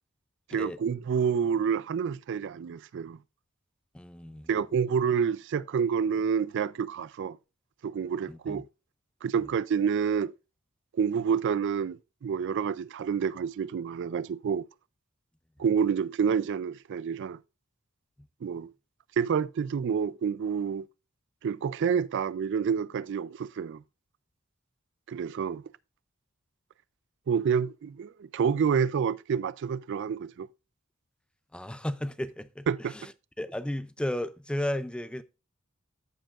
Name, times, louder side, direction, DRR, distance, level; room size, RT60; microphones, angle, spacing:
voice 1, 0.5-3.2 4.5-7.4 7.8-8.6 9.2-10.3 11.0-14.6 15.6-17.4 18.4-18.7 19.2-20.9 21.4-23.8 25.1-25.6 27.3-30.5 32.7-32.9, right 7 dB, 60° right, 0.3 m, -28 dB
voice 2, 3.9-4.5 8.3-8.6 31.5-32.7 32.9-33.1 33.4-35.2, left 1 dB, 5° left, 0.4 m, -34 dB
14.0 x 5.1 x 2.4 m
head